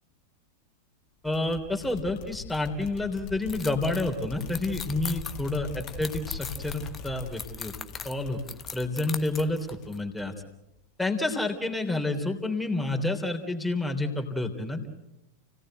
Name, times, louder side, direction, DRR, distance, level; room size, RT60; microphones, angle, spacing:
voice 1, 1.2-7.7 8.0-8.4 8.7-10.3 11.0-14.9, left 2 dB, 5° left, 3 dB, 3.4 m, -29 dB
sound 1, 1.3-10.5, left 5 dB, 40° left, 2.2 m, -42 dB
sound 2, 3.5-10.0, left 6 dB, 20° left, 1.1 m, -41 dB
30.0 x 18.0 x 7.8 m, 0.93 s
figure-of-eight pair, 90°, 0 cm